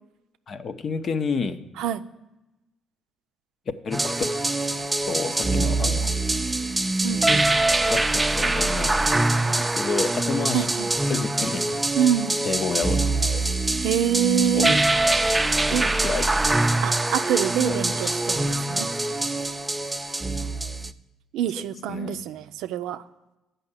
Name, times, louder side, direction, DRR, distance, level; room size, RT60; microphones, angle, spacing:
voice 1, 0.5-1.6 3.8-4.2 5.1-6.2 7.9-8.9 9.5-10.7 11.1-11.8 12.4-13.1 13.3-13.4 14.5-14.7 15.5-16.3 17.7-18.1 21.6-22.3, left 4 dB, 50° left, 10 dB, 0.7 m, -30 dB
sound 1, 3.9-20.9, right 2 dB, 15° right, 0.5 m, -24 dB
voice 2, 7.0-7.5 10.5-10.9 12.0-12.4 13.8-14.8 15.7-15.9 16.8-18.9 21.3-23.0, right 10 dB, 80° right, 11 dB, 0.4 m, -25 dB
7.7 x 5.5 x 7.2 m, 0.99 s
supercardioid pair, 75°, 0 cm